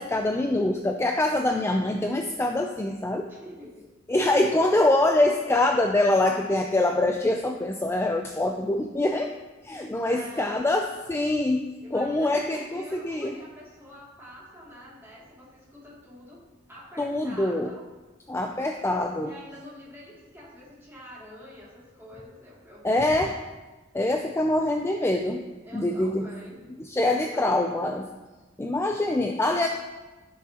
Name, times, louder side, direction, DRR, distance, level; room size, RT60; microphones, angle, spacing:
voice 1, 0.0-3.3 4.1-9.3 9.6-13.4 17.0-17.7 18.3-19.3 22.8-23.3 23.9-25.4 25.7-26.3 26.8-28.1 28.6-29.7, left 2 dB, 15° left, 3 dB, 0.4 m, -24 dB
voice 2, 3.3-3.9 10.0-10.7 11.8-16.4 16.7-17.9 19.2-23.1 25.6-26.6 27.0-27.7, equal, 15° right, -7 dB, 2.5 m, -46 dB
14.0 x 6.1 x 2.9 m, 1.2 s
head